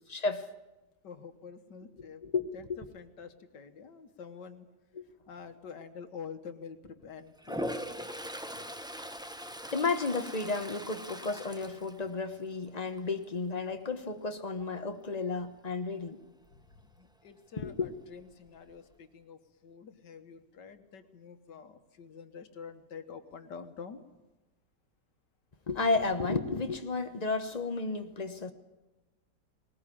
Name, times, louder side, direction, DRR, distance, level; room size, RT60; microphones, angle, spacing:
voice 1, 0.1-0.5 2.2-2.8 5.0-5.1 9.7-16.2 17.6-17.9 25.7-28.5, left 3 dB, 25° left, 1.1 m, -32 dB
voice 2, 1.0-2.2 2.5-4.7 5.3-7.6 16.8-24.0, left 6 dB, 85° left, 1.9 m, -47 dB
Toilet flush, 7.4-12.6 13.0-13.4 17.8-17.9 18.2-18.9, equal, 5° right, 0.5 m, -41 dB
20.0 x 20.0 x 8.6 m
omnidirectional pair, 1.8 m